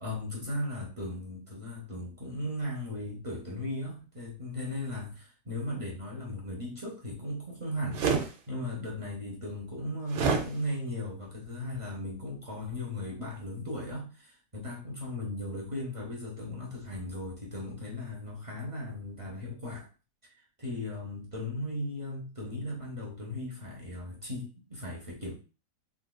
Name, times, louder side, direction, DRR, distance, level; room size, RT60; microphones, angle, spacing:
voice 1, 0.0-19.9 20.6-25.3, left 1 dB, 40° right, -4 dB, 0.4 m, -37 dB
sound 1, 7.9-8.3 10.1-10.5, right 5 dB, 85° right, 1.3 m, -26 dB
3.9 x 2.4 x 2.2 m, 0.35 s
omnidirectional pair, 1.8 m